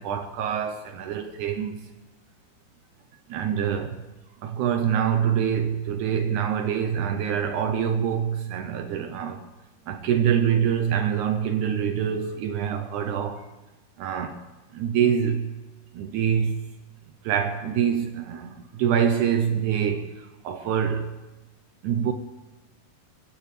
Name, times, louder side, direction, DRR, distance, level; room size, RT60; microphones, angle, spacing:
voice 1, 0.0-1.9 3.3-4.0 4.4-9.4 9.9-13.5 14.0-14.4 14.7-15.5 15.9-16.6 17.2-20.1 20.4-21.1 21.8-22.1, right 8 dB, 85° right, 1.7 m, -25 dB
22.5 x 15.5 x 3.3 m
omnidirectional pair, 4.4 m